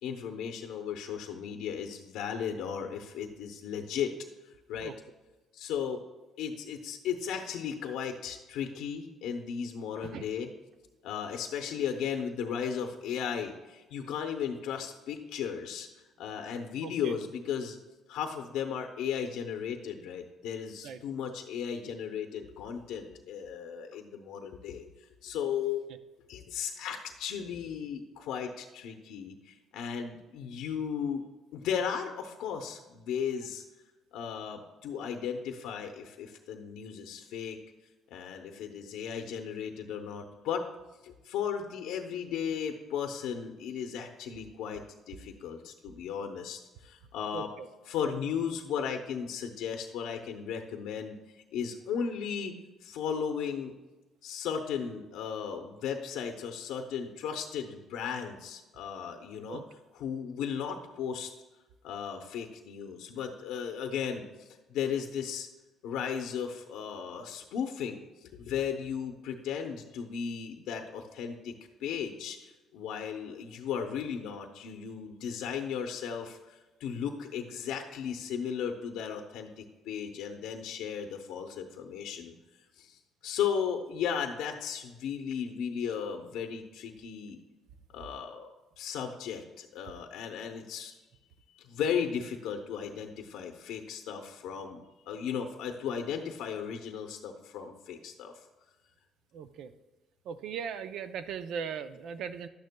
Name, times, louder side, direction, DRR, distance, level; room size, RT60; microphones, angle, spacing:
voice 1, 0.0-4.1 4.7-4.9 5.5-6.0 6.4-10.5 11.0-15.9 16.2-17.8 18.1-24.9 25.2-25.9 26.3-31.2 31.5-33.6 34.1-37.6 38.1-40.7 41.0-47.5 47.9-51.2 51.5-52.6 52.8-53.7 54.2-59.6 60.0-61.3 61.8-65.5 65.8-82.4 82.8-87.4 87.9-88.5 88.8-90.9 91.6-98.3, left 7 dB, 85° left, 4 dB, 0.7 m, -35 dB
voice 2, 16.8-17.1 20.8-21.0 47.3-47.7 59.5-59.6 99.3-99.7 100.3-102.5, right 7 dB, 70° right, 11 dB, 0.5 m, -38 dB
11.5 x 9.4 x 2.2 m, 1.1 s
cardioid pair, 130°, 0 cm